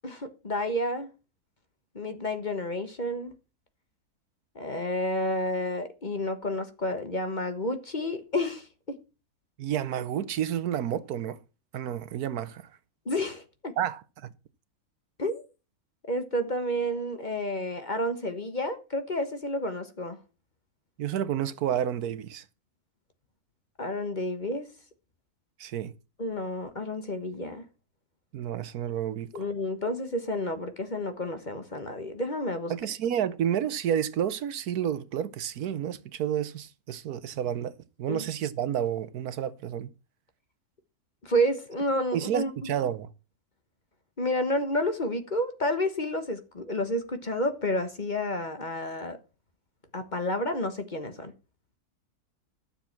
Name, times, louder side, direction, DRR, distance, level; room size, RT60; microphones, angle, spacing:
voice 1, 0.0-1.1 1.9-3.3 4.5-9.0 13.0-13.7 15.2-15.4 16.1-20.2 23.8-24.7 26.2-27.6 29.3-32.7 38.1-38.2 41.2-42.7 44.2-49.2 49.9-51.3, left 1 dB, 30° left, 1.3 m, -30 dB
voice 2, 9.6-11.4 11.7-12.7 13.8-14.0 21.0-22.4 25.6-25.9 28.3-29.4 32.7-39.9 42.1-43.1, right 9 dB, 80° right, 1.3 m, -30 dB
12.5 x 7.0 x 5.9 m
omnidirectional pair, 1.6 m